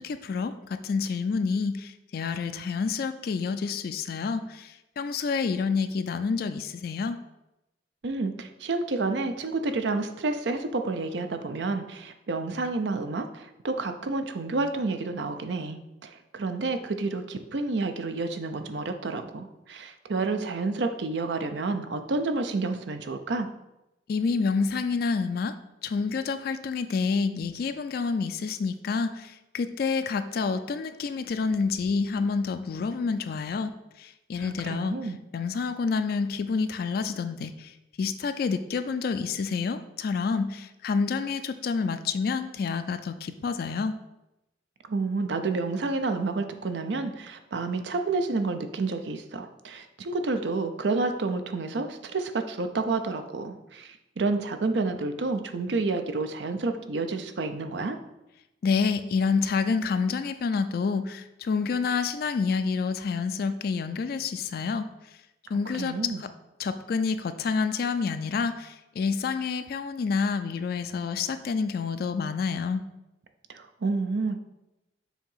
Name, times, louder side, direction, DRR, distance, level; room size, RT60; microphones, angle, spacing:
voice 1, 0.0-7.2 24.1-25.6 25.8-44.0 58.6-64.9 65.5-66.3 66.6-72.8, left 5 dB, 55° left, 10 dB, 0.3 m, -28 dB
voice 2, 8.0-23.5 34.4-35.2 44.9-58.0 65.7-66.2 73.5-74.4, right 3 dB, 75° right, 8 dB, 0.6 m, -29 dB
7.2 x 2.9 x 5.5 m, 0.94 s
head